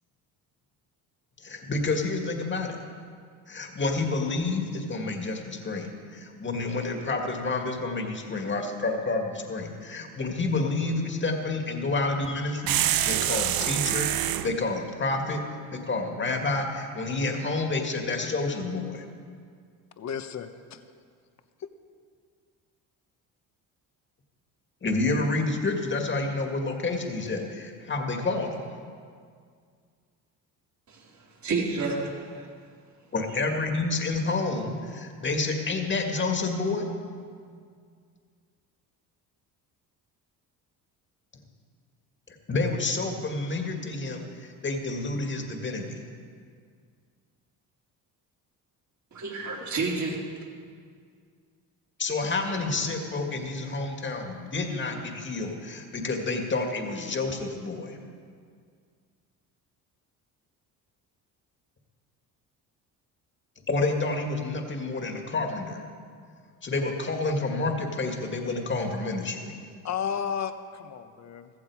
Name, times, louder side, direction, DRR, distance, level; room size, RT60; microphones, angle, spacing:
voice 1, 1.4-2.8 3.5-14.1 14.4-15.4 15.7-19.0 24.8-28.6 33.1-36.9 42.3-46.0 52.0-58.0 63.7-65.8 66.6-69.5, left 3 dB, 30° left, 3 dB, 2.1 m, -29 dB
sound 1, 12.7-14.5, right 12 dB, 65° right, 0.8 m, -25 dB
voice 2, 20.0-20.8 69.8-71.5, left 7 dB, 45° left, 9 dB, 1.1 m, -33 dB
voice 3, 31.4-32.5 49.1-50.2, right 3 dB, 50° right, -2 dB, 3.7 m, -29 dB
15.5 x 14.5 x 4.9 m, 2.1 s
cardioid pair, 95°, 38 cm